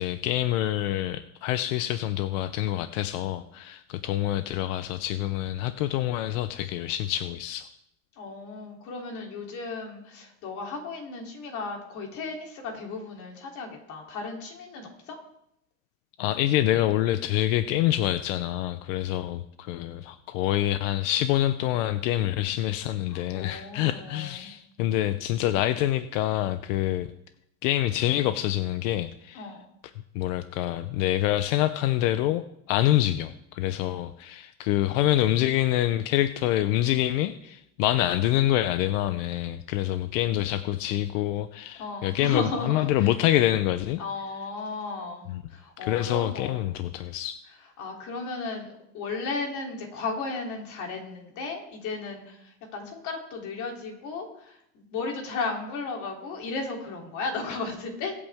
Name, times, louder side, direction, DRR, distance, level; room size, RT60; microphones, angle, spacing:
voice 1, 0.0-7.7 16.2-27.1 27.6-29.5 30.1-44.0 45.3-45.4 45.8-47.4, left 13 dB, 90° left, 11 dB, 0.8 m, -26 dB
voice 2, 8.2-15.2 23.1-24.5 29.3-29.6 41.7-43.1 44.0-46.6 47.8-48.7 48.9-58.2, left 3 dB, 50° left, 1 dB, 3.2 m, -35 dB
23.0 x 8.6 x 3.6 m, 0.77 s
cardioid pair, 155°, 38 cm